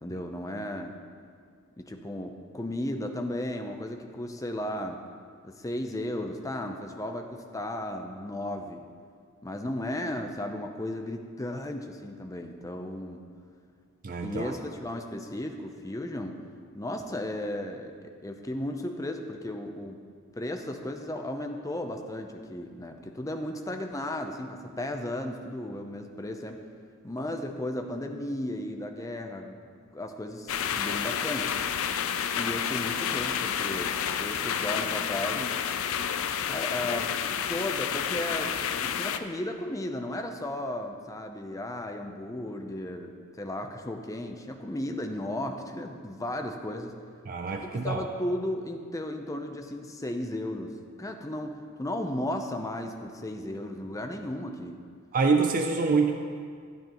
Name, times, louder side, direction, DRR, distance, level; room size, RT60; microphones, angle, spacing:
voice 1, 0.0-0.9 1.8-5.0 5.4-8.8 9.4-13.2 14.2-16.4 16.7-20.0 20.3-26.6 27.0-29.6 29.9-31.5 32.4-33.9 34.2-35.5 36.5-37.1 37.5-46.9 47.6-54.8, left 1 dB, 15° left, 4 dB, 0.6 m, -35 dB
voice 2, 14.0-14.5 47.3-48.1 55.1-56.1, right 4 dB, 40° right, 4 dB, 0.5 m, -25 dB
sound 1, 30.5-39.2, left 8 dB, 65° left, 0.4 m, -30 dB
13.0 x 9.2 x 3.0 m, 2.1 s
head